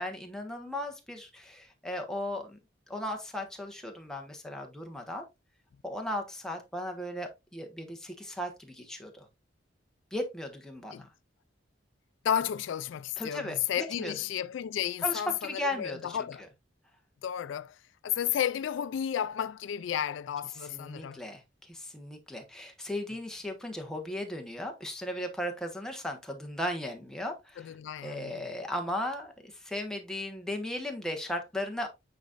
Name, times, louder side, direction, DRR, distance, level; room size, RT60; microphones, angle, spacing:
voice 1, 0.0-2.6 2.9-5.2 5.8-9.3 10.1-11.1 13.2-14.1 15.0-16.3 20.7-27.7 28.0-31.9, left 1 dB, 5° left, 1.2 m, -36 dB
voice 2, 12.2-16.4 17.2-17.8 18.0-21.2 27.6-28.4, left 9 dB, 75° left, 0.3 m, -32 dB
9.2 x 4.1 x 2.5 m
head